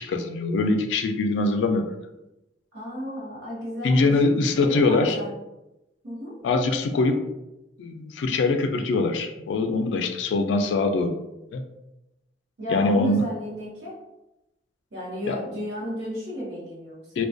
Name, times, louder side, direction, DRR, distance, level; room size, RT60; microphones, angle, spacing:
voice 1, 0.0-1.9 3.8-5.2 6.4-7.2 7.8-11.2 11.5-11.6 12.7-13.3 15.3-15.4 17.2-17.3, left 3 dB, 85° left, 6 dB, 0.3 m, -23 dB
voice 2, 2.7-4.1 4.6-5.3 6.0-6.4 12.6-14.0 14.9-17.0, equal, 70° right, -6 dB, 0.8 m, -32 dB
2.3 x 2.2 x 2.4 m, 0.94 s
head